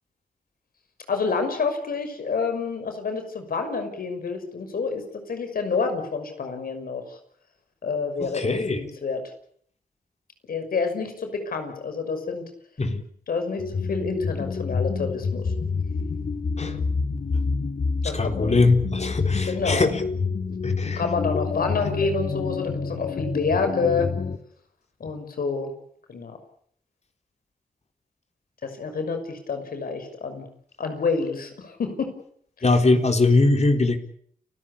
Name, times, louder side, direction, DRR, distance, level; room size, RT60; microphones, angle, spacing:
voice 1, 1.1-7.0 7.8-9.2 10.5-12.4 13.3-15.5 18.0-18.5 19.5-19.9 20.8-24.1 25.0-25.7 26.1-26.4 28.6-30.5 30.8-32.1, left 4 dB, 85° left, 7 dB, 6.0 m, -28 dB
voice 2, 8.2-8.8 12.8-13.0 16.6-16.8 18.0-20.0 20.6-21.0 25.0-25.1 32.6-34.0, left 3 dB, 50° left, 5 dB, 4.1 m, -21 dB
sound 1, 13.6-24.4, left 4 dB, 70° left, 2.2 m, -27 dB
29.5 x 15.5 x 8.6 m, 0.63 s
cardioid pair, 45°, 15 cm